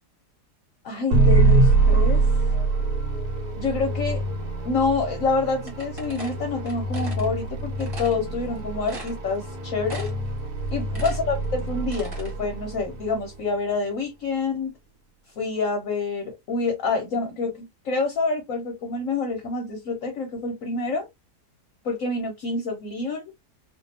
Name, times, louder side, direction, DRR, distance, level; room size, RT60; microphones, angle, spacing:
voice 1, 0.8-2.3 3.6-4.2 4.6-10.1 10.7-14.8 15.4-21.1 21.8-23.3, left 3 dB, 65° left, 0.9 m, -27 dB
sound 1, 1.1-13.3, right 3 dB, 70° right, 1.2 m, -24 dB
sound 2, 5.7-7.3 7.8-8.2 8.6-8.7 8.9-9.5 9.9-10.3 10.6-12.3, equal, 30° right, 1.1 m, -40 dB
2.6 x 2.4 x 2.6 m
omnidirectional pair, 1.7 m